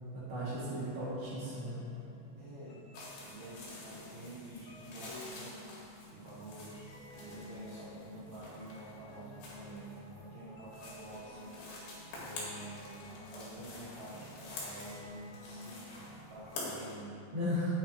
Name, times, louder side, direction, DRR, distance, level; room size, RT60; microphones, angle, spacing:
voice 1, 0.1-1.8 17.3-17.8, equal, 35° right, -11 dB, 1.3 m, -35 dB
sound 1, 1.2-17.0, equal, 40° left, 2.6 m, -53 dB
voice 2, 2.4-2.9 3.3-5.8 6.1-6.9 7.2-11.6 12.1-17.2 17.6-17.8, right 1 dB, 80° right, -8 dB, 1.7 m, -49 dB
sound 2, 2.9-17.0, left 2 dB, 70° left, 4.1 m, -48 dB
10.0 x 9.5 x 3.0 m, 2.5 s
omnidirectional pair, 5.1 m